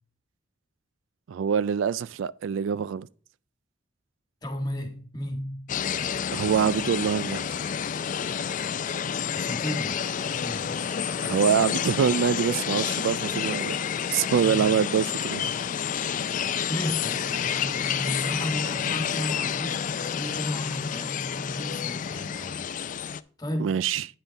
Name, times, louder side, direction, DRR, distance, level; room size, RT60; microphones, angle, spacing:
voice 1, 1.3-3.1 6.3-7.4 11.2-13.7 14.1-15.5 23.6-24.1, right 7 dB, 85° right, 0.3 m, -25 dB
voice 2, 4.4-5.6 9.3-10.0 10.3-10.8 14.3-14.8 16.7-22.7 23.4-23.8, equal, 20° left, 1.6 m, -34 dB
sound 1, 5.7-23.2, left 8 dB, 45° left, 0.4 m, -29 dB
9.8 x 5.7 x 3.9 m
head